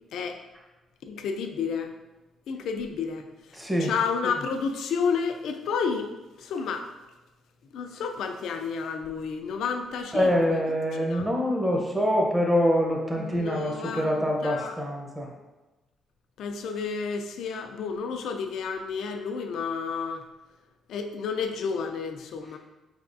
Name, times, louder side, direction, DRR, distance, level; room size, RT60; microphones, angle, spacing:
voice 1, 0.1-0.4 1.1-1.9 2.5-3.2 3.9-6.1 6.4-6.9 7.7-10.6 11.1-11.3 13.2-14.7 16.4-20.2 20.9-22.6, left 5 dB, 75° left, 6 dB, 0.4 m, -31 dB
voice 2, 3.5-3.9 10.1-15.3, equal, 10° right, -1 dB, 0.7 m, -25 dB
4.7 x 3.4 x 2.6 m, 1.1 s
cardioid pair, 90°, 0 cm